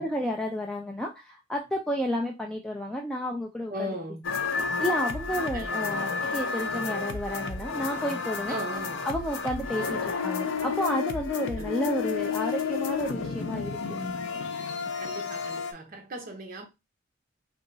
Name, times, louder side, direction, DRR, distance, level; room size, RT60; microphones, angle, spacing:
voice 1, 0.0-3.9 4.6-8.6 9.0-13.7, equal, 5° left, 0.3 m, -31 dB
voice 2, 3.7-4.3 5.5-6.3 8.5-9.1 9.8-10.0 11.4-11.8 15.0-16.7, equal, 45° right, 0.8 m, -38 dB
sound 1, 4.2-15.7, left 5 dB, 75° left, 0.5 m, -31 dB
2.9 x 2.2 x 3.8 m
head